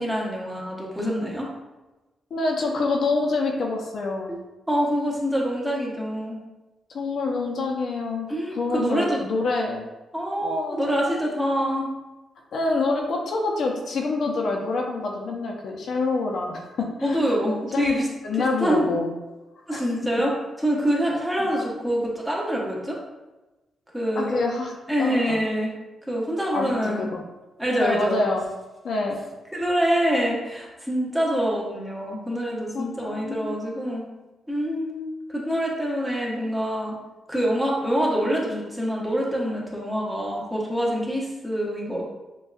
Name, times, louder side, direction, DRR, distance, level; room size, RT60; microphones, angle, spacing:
voice 1, 0.0-1.5 4.3-4.4 4.7-6.4 8.3-9.2 10.1-11.9 17.0-18.1 18.4-18.9 19.7-20.3 20.6-23.0 23.9-24.4 24.9-25.7 26.1-27.1 27.6-28.2 29.5-34.1 34.5-37.0 37.3-42.0, equal, 5° right, -3 dB, 0.9 m, -25 dB
voice 2, 2.3-4.4 6.9-9.8 10.4-11.3 12.5-17.2 17.7-19.1 19.7-19.9 21.4-21.5 24.2-24.7 25.0-25.2 26.5-27.2 27.8-28.4 28.8-29.2 32.7-33.6, left 3 dB, 60° left, 1 dB, 0.6 m, -26 dB
6.7 x 2.3 x 2.4 m, 1.1 s
cardioid pair, 125°, 0 cm